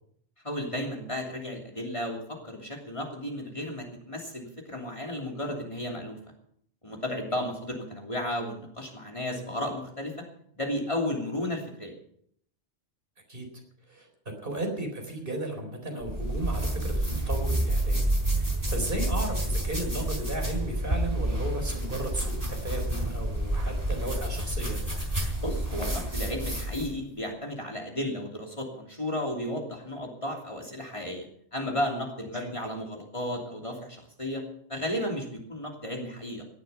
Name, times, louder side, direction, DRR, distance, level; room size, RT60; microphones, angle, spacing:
voice 1, 0.4-6.2 6.8-10.1 10.6-11.9 25.4-31.3 31.5-34.4 34.7-36.4, left 1 dB, 30° left, 0 dB, 3.1 m, -33 dB
voice 2, 13.9-18.0 18.3-24.8 32.3-32.5, right 1 dB, 50° right, 3 dB, 4.4 m, -35 dB
sound 1, 16.0-27.0, right 1 dB, 35° right, 4.3 m, -29 dB
18.0 x 12.0 x 5.7 m, 0.66 s
omnidirectional pair, 1.1 m